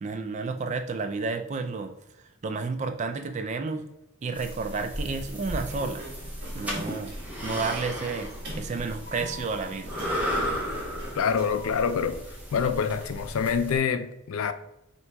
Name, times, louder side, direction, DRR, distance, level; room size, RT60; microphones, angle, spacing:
voice 1, 0.0-1.9 2.4-3.8 4.2-6.1 6.5-7.1 7.4-8.3 8.6-10.0, right 4 dB, 35° right, 0.3 m, -31 dB
sound 1, 4.3-13.8, equal, 5° right, 0.7 m, -35 dB
Sliding door, 5.4-11.9, equal, 50° right, 1.3 m, -43 dB
voice 2, 11.1-12.2 12.5-14.5, left 6 dB, 75° left, 0.4 m, -26 dB
3.4 x 2.8 x 4.4 m
head